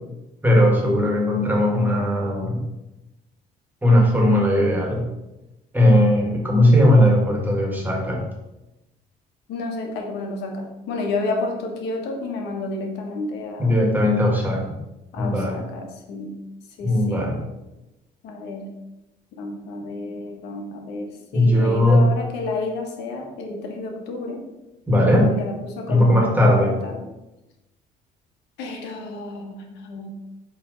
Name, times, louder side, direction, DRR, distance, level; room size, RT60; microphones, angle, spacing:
voice 1, 0.4-2.6 3.8-5.1 5.7-8.2 13.6-14.6 15.2-15.6 16.8-17.4 21.3-22.1 24.9-25.3 25.9-26.7, left 1 dB, 10° right, -1 dB, 1.6 m, -18 dB
voice 2, 9.5-13.7 15.1-16.3 16.8-17.3 18.2-18.7 19.4-24.4 25.3-27.0 28.6-30.1, left 2 dB, 85° left, 2 dB, 1.2 m, -31 dB
7.7 x 3.2 x 3.9 m, 0.97 s
cardioid pair, 110°, 17 cm